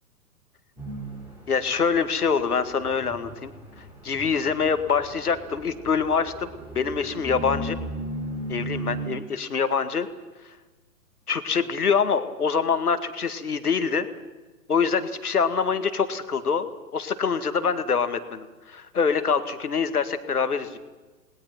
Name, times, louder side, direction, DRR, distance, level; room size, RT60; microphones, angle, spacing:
sound 1, 0.8-9.1, right 1 dB, 5° right, 7.0 m, -37 dB
voice 1, 1.5-3.5 4.0-6.5 6.8-7.8 8.5-10.1 11.3-14.1 14.7-16.7 16.9-20.8, left 5 dB, 70° left, 10 dB, 2.1 m, -25 dB
29.0 x 20.5 x 5.9 m, 1.2 s
figure-of-eight pair, 115°, 47 cm